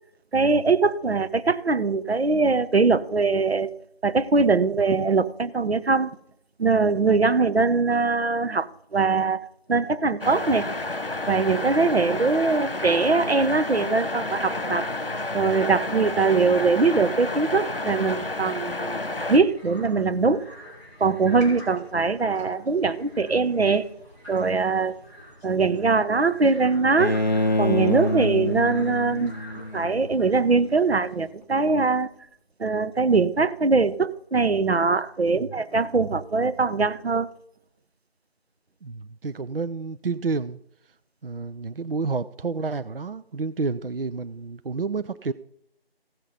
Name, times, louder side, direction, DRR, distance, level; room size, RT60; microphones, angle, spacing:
voice 1, 0.3-3.7 4.0-6.1 6.6-8.7 8.9-10.7 11.3-14.9 15.3-20.4 21.0-23.9 24.3-25.0 25.4-27.2 27.6-29.3 29.7-32.1 32.6-37.3, right 4 dB, 90° right, 0.9 m, -22 dB
sound 1, 10.2-19.4, left 2 dB, 65° left, 1.3 m, -30 dB
sound 2, 18.9-31.3, equal, 15° right, 2.4 m, -46 dB
Bowed string instrument, 27.0-30.0, left 1 dB, 45° left, 0.5 m, -26 dB
voice 2, 38.8-40.6 41.2-45.3, right 4 dB, 65° right, 0.5 m, -30 dB
15.5 x 5.9 x 5.1 m
figure-of-eight pair, 180°, 31 cm